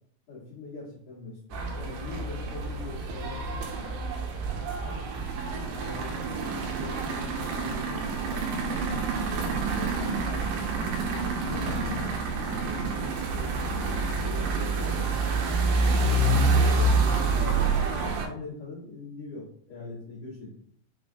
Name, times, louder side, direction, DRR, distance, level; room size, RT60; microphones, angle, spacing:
voice 1, 0.3-4.0 4.8-6.2 6.5-13.7 14.2-15.4 16.0-20.6, left 3 dB, 60° left, -11 dB, 2.1 m, -42 dB
sound 1, 1.5-18.3, right 3 dB, 85° right, 2.5 m, -27 dB
5.9 x 2.2 x 2.5 m, 0.63 s
omnidirectional pair, 4.4 m